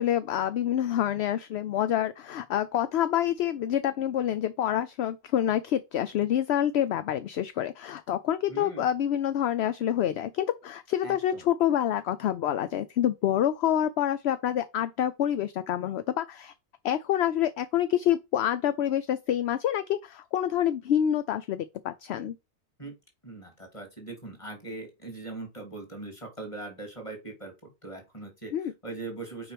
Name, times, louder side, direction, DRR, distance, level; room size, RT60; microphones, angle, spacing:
voice 1, 0.0-16.5 16.8-22.4 28.5-28.7, left 10 dB, 65° left, 0.8 m, -27 dB
voice 2, 8.5-8.9 11.0-11.4 22.8-22.9 23.2-28.5 28.8-29.5, right 3 dB, 25° left, 2.8 m, -40 dB
6.0 x 4.9 x 5.0 m
omnidirectional pair, 1.3 m